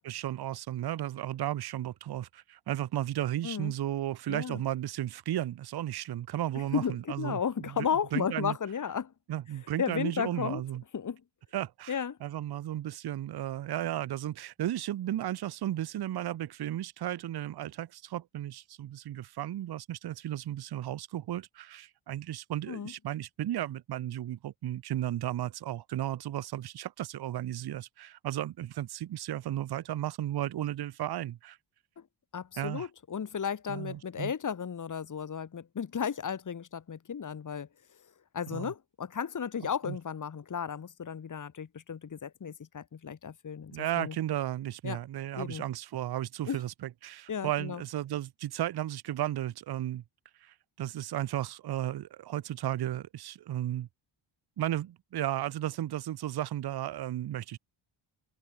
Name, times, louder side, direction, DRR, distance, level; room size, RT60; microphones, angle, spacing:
voice 1, 0.0-8.6 9.3-10.8 11.5-31.6 32.6-32.9 33.7-34.3 38.5-38.7 39.9-40.0 43.7-50.0 50.4-53.9 54.6-57.6, right 12 dB, 50° right, 0.7 m, -34 dB
voice 2, 4.3-4.6 6.7-9.1 9.8-10.6 10.9-11.2 11.9-12.2 22.7-22.9 32.3-37.7 38.3-44.2 44.8-45.0 45.3-45.6 46.5-46.6 47.3-47.8, left 7 dB, 35° left, 2.1 m, -34 dB
open air
wide cardioid pair, 140°, 50 cm